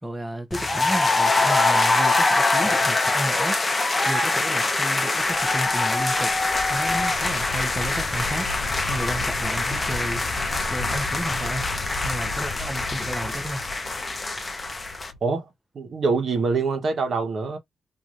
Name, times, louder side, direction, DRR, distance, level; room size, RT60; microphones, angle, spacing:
voice 1, 0.0-3.6 4.0-6.3 6.7-8.5 8.9-10.2 10.7-11.7 12.0-13.6, right 1 dB, 10° right, 0.9 m, -32 dB
sound 1, 0.5-15.1, left 3 dB, 25° left, 0.8 m, -24 dB
sound 2, 5.2-15.2, left 3 dB, 60° left, 0.6 m, -36 dB
voice 2, 15.7-17.6, right 4 dB, 60° right, 1.1 m, -24 dB
3.0 x 2.7 x 2.5 m
cardioid pair, 85°, 0 cm